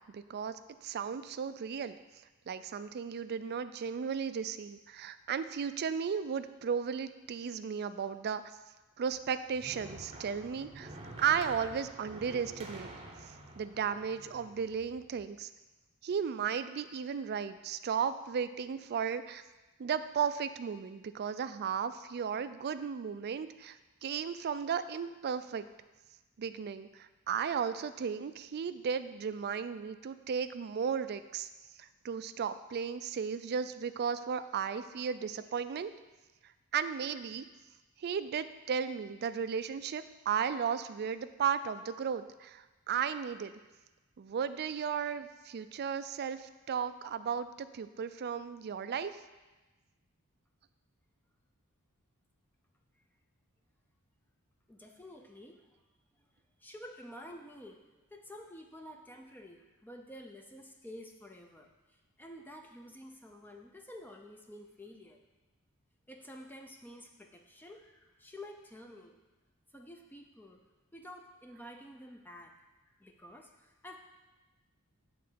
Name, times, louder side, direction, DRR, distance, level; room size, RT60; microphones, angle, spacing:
voice 1, 0.1-1.9 2.5-8.4 9.0-10.9 11.2-12.9 13.2-15.5 16.0-19.4 19.8-25.6 26.4-31.5 31.8-35.9 36.7-37.5 38.0-43.5 44.2-49.2, right 7 dB, 45° right, 12 dB, 0.4 m, -35 dB
sound 1, 9.1-15.3, right 2 dB, 25° right, 0.8 m, -49 dB
voice 2, 54.7-55.7 56.6-57.8 58.1-65.2 66.1-69.2 69.7-70.6 70.9-72.6 72.8-74.0, left 1 dB, 10° left, 3 dB, 0.5 m, -50 dB
7.8 x 3.9 x 6.7 m, 1.1 s
head